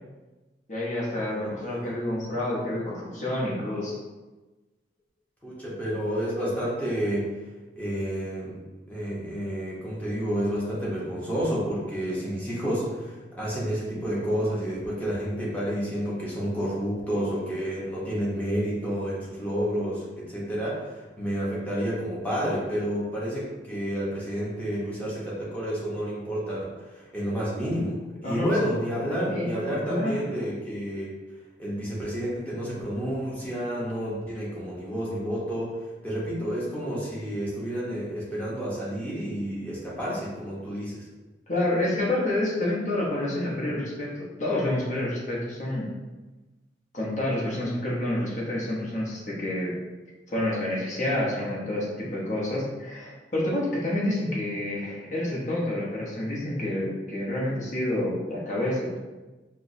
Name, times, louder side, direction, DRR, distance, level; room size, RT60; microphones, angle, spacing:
voice 1, 0.7-4.0 28.2-28.6 29.1-30.3 41.5-45.9 46.9-49.7 50.3-59.0, left 1 dB, 45° left, -4 dB, 0.8 m, -28 dB
voice 2, 1.3-1.9 5.4-7.3 7.7-8.6 8.9-31.1 31.6-35.7 36.0-41.1, equal, 10° left, -7 dB, 0.8 m, -30 dB
4.4 x 2.0 x 2.6 m, 1.2 s
head